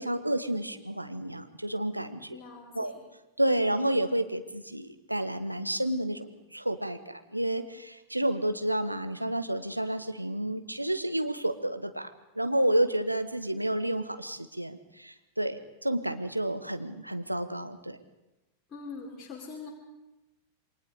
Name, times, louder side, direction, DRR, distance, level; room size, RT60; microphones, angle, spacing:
voice 1, 0.0-2.4 2.7-2.9 3.4-18.0, right 1 dB, 85° right, 9 dB, 1.3 m, -30 dB
voice 2, 2.3-3.0 18.7-19.7, left 4 dB, 20° left, -4 dB, 4.7 m, -43 dB
28.5 x 23.5 x 5.0 m, 0.98 s
figure-of-eight pair, 90°, 0 cm